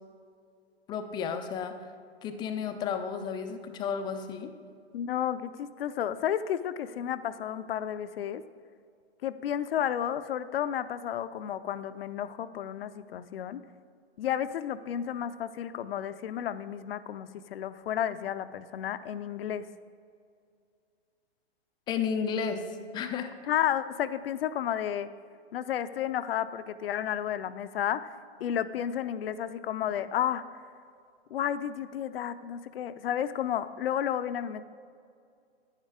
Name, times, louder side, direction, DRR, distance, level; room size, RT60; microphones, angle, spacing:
voice 1, 0.9-1.8 2.2-4.5 21.9-23.3, left 6 dB, 15° left, 7 dB, 0.4 m, -32 dB
voice 2, 4.9-8.4 9.2-13.6 14.2-19.6 23.5-25.1 25.5-28.1 28.4-30.4 31.3-34.6, left 10 dB, 60° left, 13 dB, 0.6 m, -32 dB
11.0 x 9.5 x 3.6 m, 2.3 s
hypercardioid pair, 125°, 32 cm